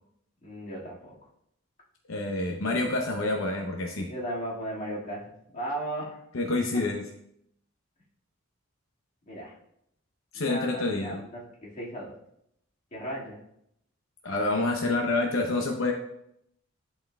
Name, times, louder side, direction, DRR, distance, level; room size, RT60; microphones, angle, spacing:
voice 1, 0.4-1.1 4.1-5.2 5.5-6.2 9.3-9.5 10.3-12.2 12.9-13.4, right 1 dB, 40° left, -6 dB, 2.0 m, -36 dB
voice 2, 2.1-4.1 6.3-7.0 10.3-11.2 14.2-15.9, left 2 dB, 80° left, 2 dB, 0.7 m, -27 dB
11.0 x 4.3 x 2.3 m, 0.74 s
head